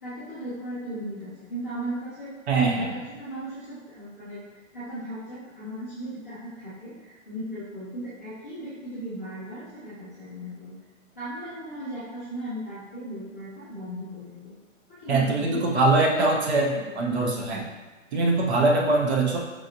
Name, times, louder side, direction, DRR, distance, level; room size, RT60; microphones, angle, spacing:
voice 1, 0.0-2.3 2.7-4.4 4.7-10.7 11.1-14.5 15.0-16.9, right 1 dB, 15° left, -15 dB, 0.4 m, -37 dB
voice 2, 2.5-2.9 15.1-17.7 18.1-19.4, right 2 dB, 55° right, 0 dB, 0.8 m, -22 dB
5.0 x 2.7 x 2.6 m, 1.3 s
hypercardioid pair, 160°, 39 cm